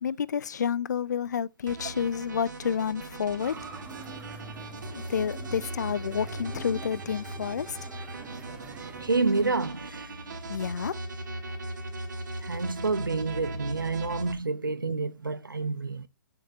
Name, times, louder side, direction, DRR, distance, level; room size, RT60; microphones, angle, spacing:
voice 1, 0.0-3.5 4.9-7.8 10.5-11.0, left 7 dB, 60° left, 0.5 m, -30 dB
sound 1, 1.7-14.3, right 1 dB, 65° right, 2.2 m, -38 dB
sound 2, 3.4-9.7, right 5 dB, 15° right, 1.1 m, -46 dB
voice 2, 9.0-10.5 12.4-16.1, right 3 dB, 85° right, 0.7 m, -29 dB
8.6 x 6.7 x 2.6 m
figure-of-eight pair, 125°, 11 cm